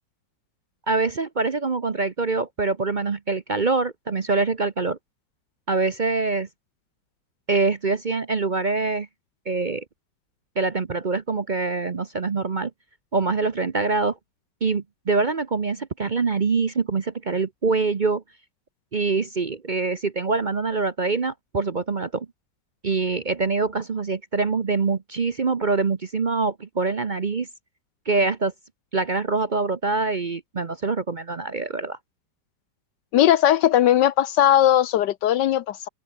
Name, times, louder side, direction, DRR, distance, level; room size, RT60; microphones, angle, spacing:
voice 1, 0.9-5.0 5.7-6.5 7.5-9.1 9.5-9.8 10.6-12.7 13.1-14.2 14.6-18.2 18.9-22.3 22.8-27.5 28.1-28.5 28.9-32.0, right 4 dB, 45° right, 0.6 m, -24 dB
voice 2, 33.1-35.9, left 11 dB, 70° left, 1.3 m, -18 dB
open air
omnidirectional pair, 2.0 m